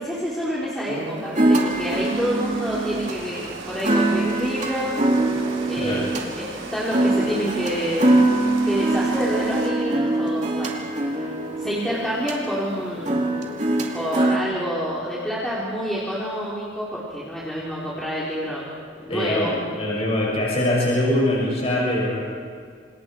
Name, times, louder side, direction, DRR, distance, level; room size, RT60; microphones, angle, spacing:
voice 1, 0.0-5.0 5.7-10.8 11.0-11.3 11.6-13.5 13.9-18.7 19.0-19.5, equal, ahead, -8 dB, 3.8 m, -28 dB
sound 1, 0.9-14.4, right 2 dB, 40° right, 2.5 m, -23 dB
Rain, 1.7-9.7, right 3 dB, 90° right, 3.6 m, -38 dB
voice 2, 19.1-22.2, left 1 dB, 30° left, -3 dB, 5.9 m, -23 dB
28.0 x 27.5 x 4.6 m, 2.1 s
head